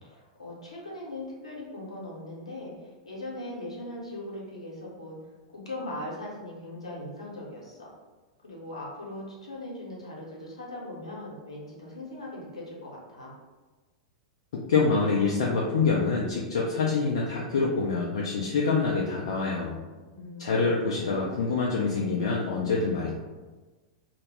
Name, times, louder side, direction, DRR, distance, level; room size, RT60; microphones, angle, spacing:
voice 1, 0.0-5.2 5.5-7.9 8.4-13.3 20.1-20.6 21.0-21.2, left 1 dB, 80° left, -4 dB, 0.8 m, -40 dB
voice 2, 14.5-19.8 20.4-23.1, left 4 dB, 60° left, -3 dB, 0.3 m, -26 dB
2.1 x 2.0 x 3.2 m, 1.3 s
figure-of-eight pair, 95°, 3 cm